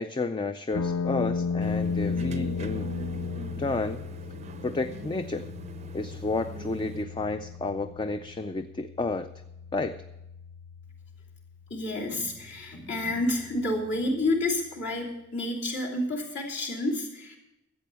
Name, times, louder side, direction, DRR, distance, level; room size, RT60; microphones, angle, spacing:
voice 1, 0.0-2.9 3.6-4.0 4.6-5.5 5.9-9.3 9.7-10.0, left 3 dB, 20° left, 10 dB, 0.4 m, -31 dB
sound 1, 0.7-14.8, left 5 dB, 85° left, 0.6 m, -36 dB
sound 2, 1.6-7.0, right 3 dB, 30° right, 0.5 m, -42 dB
voice 2, 11.7-17.4, left 1 dB, 55° left, -2 dB, 3.0 m, -29 dB
13.0 x 8.3 x 6.9 m, 0.89 s
head